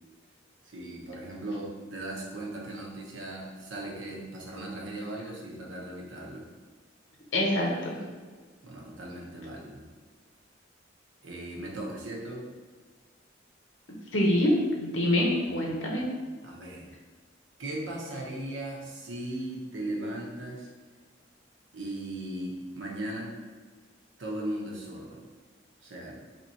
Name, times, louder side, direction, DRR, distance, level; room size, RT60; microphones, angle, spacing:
voice 1, 0.6-6.5 8.6-9.9 11.2-12.4 15.1-16.0 16.4-16.9 17.6-20.7 21.7-23.3 24.2-25.2 25.8-26.2, right 1 dB, 80° right, -2 dB, 0.9 m, -38 dB
voice 2, 7.3-8.0 14.1-14.5 14.8-16.0, left 1 dB, 85° left, -1 dB, 0.9 m, -25 dB
3.5 x 2.9 x 4.1 m, 1.5 s
head